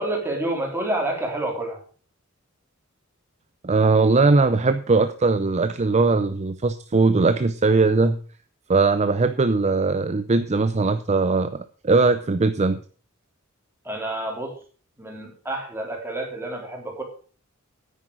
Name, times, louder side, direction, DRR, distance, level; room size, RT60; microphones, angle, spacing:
voice 1, 0.0-1.8 13.8-14.5 15.0-17.0, right 1 dB, 10° right, 0 dB, 3.7 m, -28 dB
voice 2, 3.6-8.2 8.7-12.8, right 3 dB, 30° right, 11 dB, 0.5 m, -20 dB
10.0 x 8.7 x 6.2 m, 0.41 s
head